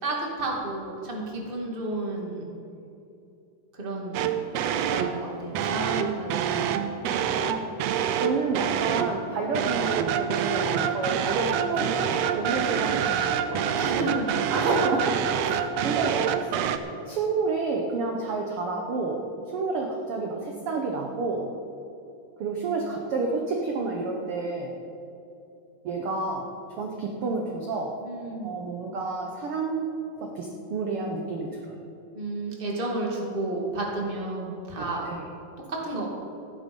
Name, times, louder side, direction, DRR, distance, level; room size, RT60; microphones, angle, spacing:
voice 1, 0.0-2.5 3.8-4.3 4.9-6.7 13.7-14.4 28.0-28.5 32.1-35.1 35.7-36.0, right 2 dB, 20° right, -2 dB, 1.8 m, -32 dB
sound 1, 4.1-5.2 5.5-9.2 9.5-16.8, right 8 dB, 85° right, 1.4 m, -26 dB
voice 2, 7.3-13.8 14.5-16.5 17.1-19.2 19.5-21.5 22.4-24.7 25.8-28.0 28.4-31.8 34.8-35.3, right 3 dB, 65° right, 1 dB, 1.5 m, -30 dB
14.5 x 11.5 x 5.3 m, 2.8 s
omnidirectional pair, 3.8 m